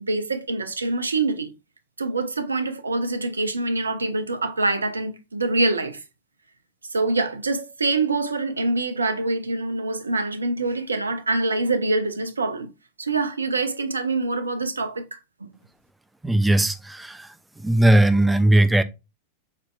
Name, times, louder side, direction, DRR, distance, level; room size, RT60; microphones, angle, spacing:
voice 1, 0.0-1.5 2.0-6.0 6.9-12.7 13.0-15.5, right 3 dB, 75° right, 0.5 m, -25 dB
voice 2, 16.2-17.3 17.6-18.8, right 1 dB, 5° right, 0.4 m, -18 dB
5.1 x 4.1 x 2.3 m
figure-of-eight pair, 90°, 0 cm